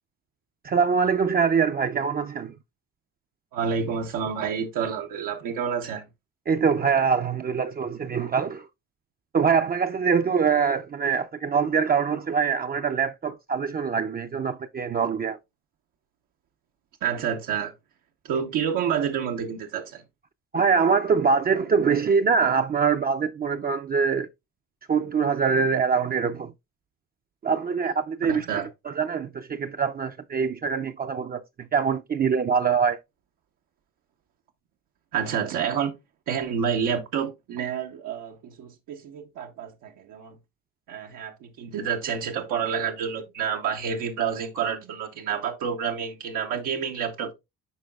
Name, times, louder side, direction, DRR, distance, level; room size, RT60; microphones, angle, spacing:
voice 1, 0.6-2.5 6.5-8.7 9.3-15.4 20.5-24.3 24.9-26.5 27.4-33.0, right 6 dB, 30° right, 0.4 m, -24 dB
voice 2, 3.5-6.0 17.0-17.7 18.2-20.0 28.3-28.7 35.1-35.9 36.3-40.3 40.9-47.3, right 7 dB, 90° right, 0.9 m, -29 dB
11.5 x 3.9 x 2.2 m
cardioid pair, 90°, 30 cm